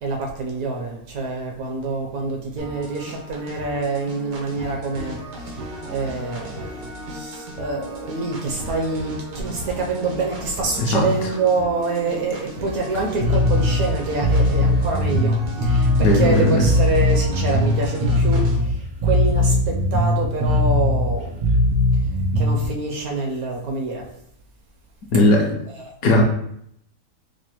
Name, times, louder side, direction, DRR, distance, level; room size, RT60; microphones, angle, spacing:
voice 1, 0.0-5.6 5.9-21.4 22.4-24.1 25.3-25.5 25.8-25.9, right 3 dB, 70° right, 0 dB, 0.9 m, -26 dB
sound 1, 2.6-18.6, right 1 dB, 85° right, 1.4 m, -35 dB
voice 2, 10.8-11.1 16.0-16.7 25.1-25.6 26.0-26.2, left 2 dB, 70° left, 0 dB, 0.9 m, -17 dB
Bass guitar, 13.2-22.7, left 1 dB, 50° right, 0.6 m, -19 dB
4.9 x 2.0 x 2.9 m, 0.72 s
omnidirectional pair, 1.8 m